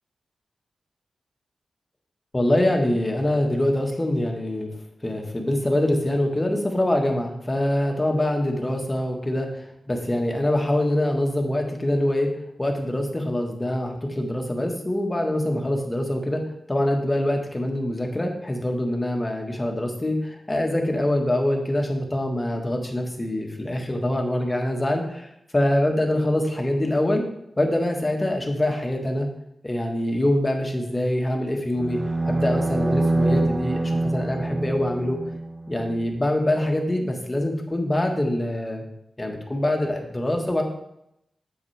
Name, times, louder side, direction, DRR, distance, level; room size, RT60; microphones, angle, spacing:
voice 1, 2.3-4.7 5.0-12.3 12.6-16.4 16.7-27.3 27.6-29.3 29.6-32.0 32.3-35.2 35.7-38.8 39.2-40.6, left 1 dB, 25° left, 2 dB, 1.4 m, -24 dB
sound 1, 31.8-36.1, right 2 dB, 40° right, 0.5 m, -25 dB
7.2 x 6.0 x 3.4 m, 0.81 s
cardioid pair, 45°, 0 cm